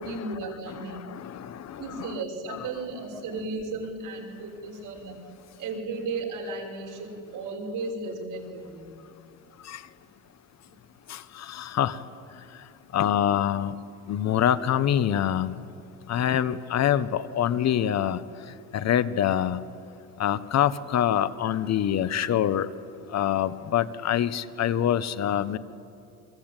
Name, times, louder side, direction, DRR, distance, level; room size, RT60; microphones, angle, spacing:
voice 1, 0.0-1.0 1.8-5.2 5.6-8.9, right 3 dB, 65° right, 1 dB, 6.1 m, -34 dB
voice 2, 0.7-2.2 2.5-2.6 9.7-9.8 11.1-12.0 12.9-13.7 14.1-15.5 16.1-18.2 18.7-19.6 20.2-22.7 23.1-25.6, left 10 dB, 50° left, 14 dB, 1.1 m, -25 dB
29.0 x 23.0 x 9.0 m, 2.6 s
cardioid pair, 130°, 34 cm